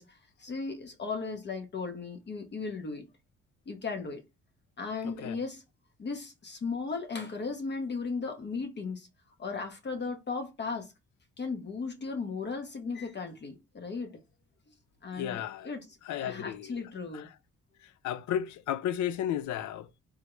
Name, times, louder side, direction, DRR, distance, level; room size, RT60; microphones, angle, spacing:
voice 1, 0.0-3.0 3.7-4.2 4.8-5.6 6.0-9.1 9.4-10.9 11.4-14.2 15.0-15.9 16.1-17.3, left 4 dB, 35° left, 0.7 m, -36 dB
voice 2, 5.0-5.4 15.2-15.7 16.1-16.8 17.1-17.3 18.0-20.0, left 10 dB, 70° left, 0.4 m, -33 dB
3.6 x 2.1 x 3.0 m
cardioid pair, 90°, 30 cm